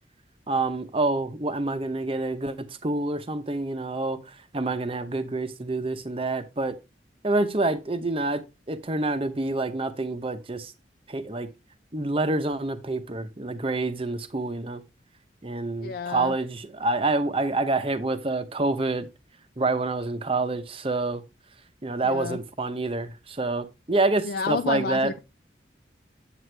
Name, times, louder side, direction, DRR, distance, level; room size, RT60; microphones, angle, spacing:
voice 1, 0.5-6.8 7.2-10.7 11.1-11.5 11.9-14.8 15.4-19.1 19.6-21.2 21.8-25.1, right 2 dB, 30° right, 0.8 m, -27 dB
voice 2, 15.8-16.3 22.0-22.4 24.2-25.2, left 5 dB, 55° left, 0.4 m, -30 dB
8.5 x 7.9 x 3.3 m
head